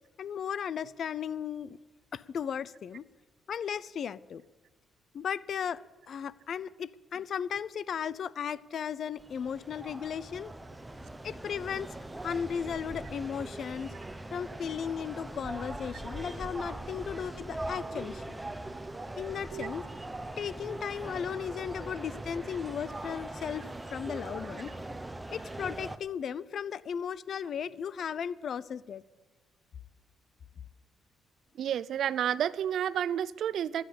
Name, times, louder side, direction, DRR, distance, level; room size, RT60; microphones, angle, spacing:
voice 1, 0.2-1.8 2.1-3.0 3.5-4.4 5.1-5.8 6.1-10.5 11.2-11.9 12.2-13.9 14.3-18.2 19.2-19.8 20.4-24.7 25.3-29.0, left 7 dB, 60° left, 0.5 m, -36 dB
sound 1, 9.2-26.0, right 1 dB, 15° right, 1.0 m, -41 dB
voice 2, 31.6-33.8, right 9 dB, 70° right, 0.5 m, -30 dB
13.0 x 10.0 x 8.6 m
cardioid pair, 90°, 0 cm